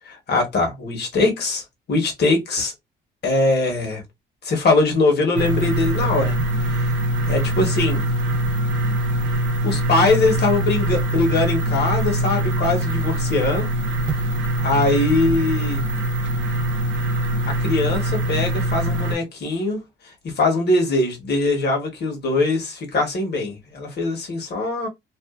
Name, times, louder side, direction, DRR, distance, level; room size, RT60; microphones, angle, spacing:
voice 1, 0.1-2.7 3.2-4.0 4.4-6.9 7.3-8.0 9.6-13.7 14.6-15.8 17.5-19.8 20.2-24.9, left 2 dB, 55° left, 1.2 m, -22 dB
sound 1, 5.4-19.2, right 1 dB, 70° right, 0.7 m, -23 dB
2.6 x 2.4 x 2.4 m
cardioid pair, 90°, 20 cm